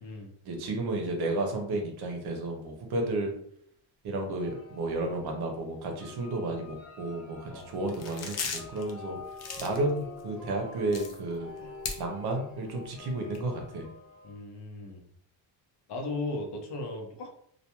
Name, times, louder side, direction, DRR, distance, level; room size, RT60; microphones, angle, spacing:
voice 1, 0.4-3.3 4.0-9.2 9.6-11.5 12.0-13.9, right 2 dB, 60° right, 3 dB, 0.7 m, -32 dB
sound 1, 4.4-14.4, left 3 dB, 5° right, 1.0 m, -47 dB
sound 2, 7.6-7.7 7.9-8.9 9.3-10.2 10.5-10.6 10.9-12.0 12.4-12.5 12.9-13.4, left 5 dB, 40° left, 0.4 m, -37 dB
voice 2, 14.2-15.1 15.9-17.3, left 2 dB, 70° left, 1 dB, 0.7 m, -37 dB
2.3 x 2.2 x 2.9 m, 0.69 s
cardioid pair, 150°, 43 cm